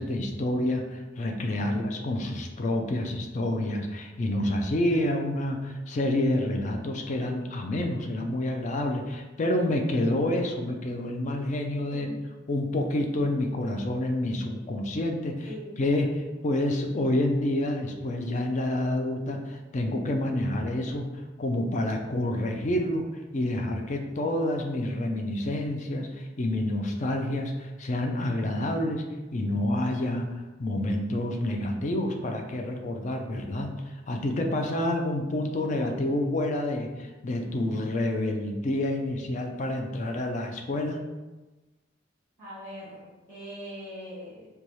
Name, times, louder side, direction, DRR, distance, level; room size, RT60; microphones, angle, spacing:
voice 1, 0.0-12.1 12.5-15.5 15.8-21.0 21.4-23.0 23.3-29.0 29.3-41.0, left 1 dB, 40° left, 3 dB, 0.4 m, -28 dB
voice 2, 15.4-15.8 42.4-44.5, equal, 15° left, -14 dB, 1.4 m, -41 dB
4.0 x 2.3 x 3.1 m, 1.1 s
head